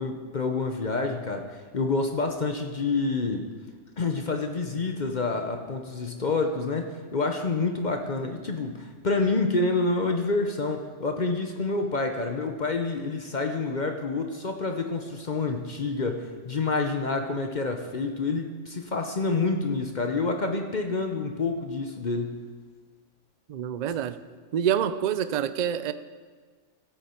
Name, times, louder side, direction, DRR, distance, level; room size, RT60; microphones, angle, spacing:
voice 1, 0.0-3.5 4.0-22.4, left 3 dB, 45° left, 5 dB, 0.8 m, -28 dB
voice 2, 23.5-24.2 24.5-25.9, right 9 dB, 65° right, 12 dB, 0.4 m, -26 dB
15.5 x 8.3 x 4.4 m, 1.5 s
omnidirectional pair, 1.3 m